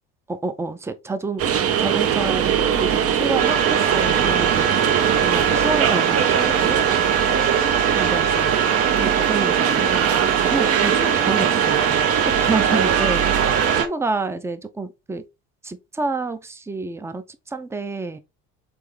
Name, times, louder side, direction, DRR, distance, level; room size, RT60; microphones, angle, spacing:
voice 1, 0.3-1.4 1.8-4.7 5.2-6.8 8.0-8.6 8.9-13.3 13.8-15.2 15.6-18.2, right 3 dB, 10° right, 0.5 m, -28 dB
sound 1, 1.4-13.8, right 8 dB, 45° right, 0.7 m, -21 dB
sound 2, 3.4-13.9, right 7 dB, 80° right, 1.0 m, -23 dB
3.8 x 3.4 x 3.2 m
supercardioid pair, 85°, 33 cm